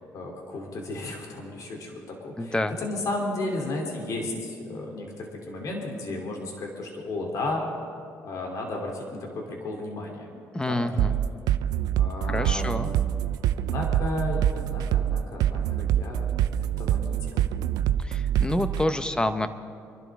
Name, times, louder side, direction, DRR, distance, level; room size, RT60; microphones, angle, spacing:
voice 1, 0.1-7.6 8.2-10.3 10.6-11.1 12.0-13.0 13.5-16.3 16.6-17.5, left 2 dB, 60° left, 0 dB, 3.2 m, -34 dB
voice 2, 2.4-2.7 10.5-11.2 12.3-12.9 18.0-19.5, left 1 dB, 15° left, 10 dB, 1.0 m, -27 dB
sound 1, 11.0-18.8, right 11 dB, 80° right, 0.5 m, -25 dB
25.0 x 12.0 x 3.7 m, 2.4 s
supercardioid pair, 80°, 7 cm